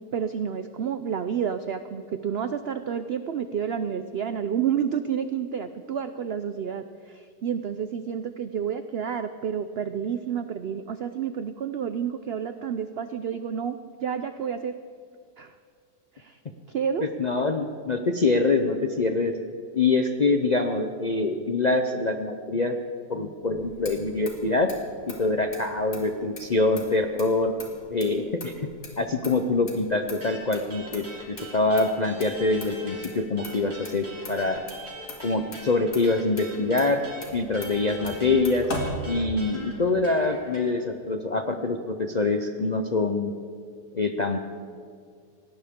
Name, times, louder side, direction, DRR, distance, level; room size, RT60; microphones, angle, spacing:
voice 1, 0.0-14.8 15.4-15.5 16.2-16.4 16.7-17.1, right 8 dB, 80° right, 10 dB, 0.5 m, -30 dB
voice 2, 17.0-19.3 19.7-22.8 23.1-24.7 25.2-27.5 27.9-28.7 29.0-34.6 35.2-37.0 37.3-38.7 39.0-43.3 43.9-44.4, left 3 dB, 55° left, 4 dB, 0.4 m, -25 dB
Motor vehicle (road), 23.4-39.7, left 1 dB, 75° left, 2.7 m, -41 dB
sound 1, 30.2-33.1 33.4-40.7, right 1 dB, 65° right, 3.8 m, -42 dB
19.0 x 17.0 x 3.7 m, 2.2 s
omnidirectional pair, 1.7 m